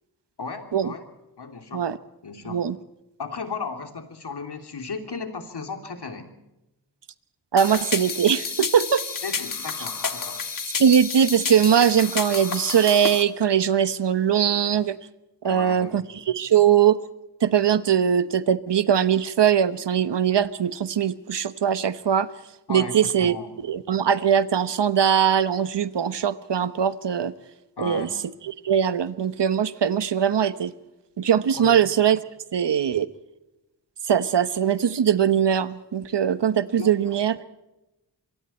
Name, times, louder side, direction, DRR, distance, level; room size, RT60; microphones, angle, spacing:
voice 1, 0.4-1.1 1.4-1.9 2.2-2.7 3.2-6.3 9.2-10.4 15.4-16.0 22.7-23.6 27.8-28.2 31.6-31.8 36.8-37.2, left 4 dB, 75° left, 6 dB, 3.1 m, -35 dB
voice 2, 7.5-9.0 10.8-15.0 15.4-16.0 16.3-17.0 17.4-22.3 22.7-23.4 23.7-27.3 27.8-28.1 28.5-30.7 31.2-32.2 32.5-33.1 34.1-37.4, right 8 dB, 90° right, 14 dB, 1.1 m, -21 dB
sound 1, 7.6-13.2, left 5 dB, 55° left, 1.6 m, -30 dB
26.5 x 23.5 x 4.4 m, 0.96 s
wide cardioid pair, 110°, 41 cm